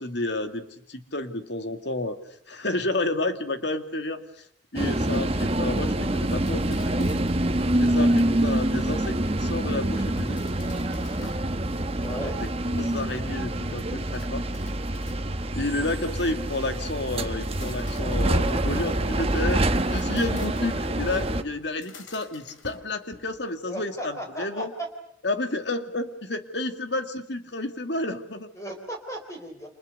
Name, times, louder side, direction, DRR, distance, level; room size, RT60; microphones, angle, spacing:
voice 1, 0.0-2.2 2.5-4.4 4.7-7.1 7.8-10.4 12.4-12.5 12.8-14.4 15.5-24.7 25.2-28.5, left 2 dB, 60° left, 8 dB, 2.3 m, -31 dB
sound 1, 4.7-21.4, right 1 dB, 30° right, 1.3 m, -26 dB
sound 2, 6.3-7.5 9.9-11.5 11.9-12.5 14.0-15.6 17.2-19.2 19.7-20.9 21.6-23.5, left 4 dB, 85° left, 3.8 m, -49 dB
voice 2, 12.0-12.4 23.6-24.9 28.5-29.7, right 1 dB, 15° left, 3 dB, 4.0 m, -36 dB
29.5 x 27.5 x 6.7 m, 0.67 s
head